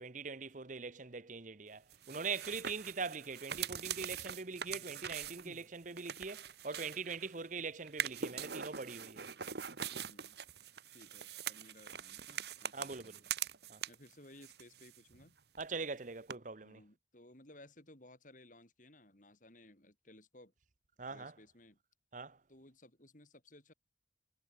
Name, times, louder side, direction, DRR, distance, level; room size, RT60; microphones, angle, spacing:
voice 1, 0.0-9.3 12.7-13.1 13.7-13.8 15.6-16.8 21.0-21.3 22.1-22.4, right 4 dB, 45° right, 1.0 m, -42 dB
sound 1, 1.9-7.4 7.9-14.1 14.4-15.3 15.5-15.6 16.3-16.4, right 8 dB, 60° right, 1.3 m, -43 dB
voice 2, 9.9-10.4 10.9-13.3 13.9-15.3 16.6-20.5 21.1-21.8 22.5-23.7, left 1 dB, 45° left, 4.3 m, -59 dB
head